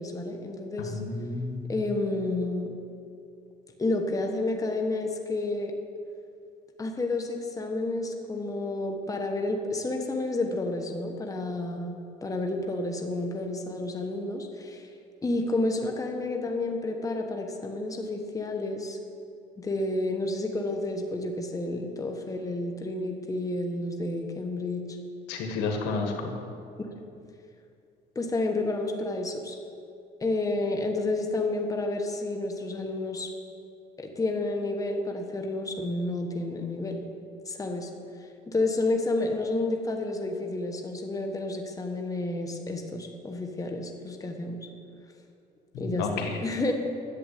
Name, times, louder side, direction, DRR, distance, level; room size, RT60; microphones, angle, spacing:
voice 1, 0.0-1.0 1.7-2.7 3.8-5.7 6.8-11.9 12.2-14.9 15.2-19.0 19.6-24.8 28.1-29.6 30.2-33.3 34.0-37.0 37.5-37.9 38.5-44.7 45.8-46.7, left 2 dB, 20° left, 3 dB, 1.4 m, -30 dB
voice 2, 0.9-1.6 25.3-26.1 45.7-46.3, left 4 dB, 90° left, 3 dB, 1.6 m, -30 dB
11.0 x 7.8 x 8.4 m, 2.5 s
cardioid pair, 110°, 17 cm